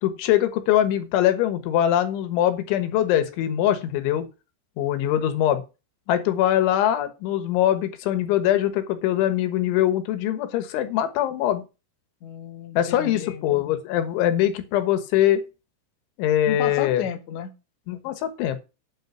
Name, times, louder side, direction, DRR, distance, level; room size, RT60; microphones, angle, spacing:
voice 1, 0.0-4.3 4.8-5.6 6.1-11.6 12.8-15.4 16.2-17.1 17.9-18.6, left 12 dB, 80° left, 9 dB, 3.7 m, -22 dB
voice 2, 12.2-13.4 16.5-17.5, left 9 dB, 65° left, 6 dB, 1.9 m, -32 dB
9.1 x 6.9 x 5.8 m, 0.29 s
omnidirectional pair, 5.4 m